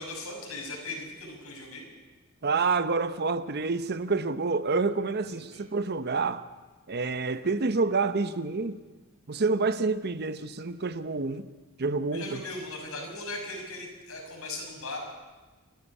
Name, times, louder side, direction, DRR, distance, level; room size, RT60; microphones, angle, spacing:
voice 1, 0.0-1.9 5.3-5.6 12.1-15.0, left 2 dB, 75° left, 1 dB, 6.2 m, -38 dB
voice 2, 2.4-6.4 6.9-8.8 9.3-11.5 11.8-12.4, right 4 dB, 50° right, 13 dB, 0.8 m, -28 dB
28.0 x 10.5 x 9.9 m, 1.3 s
head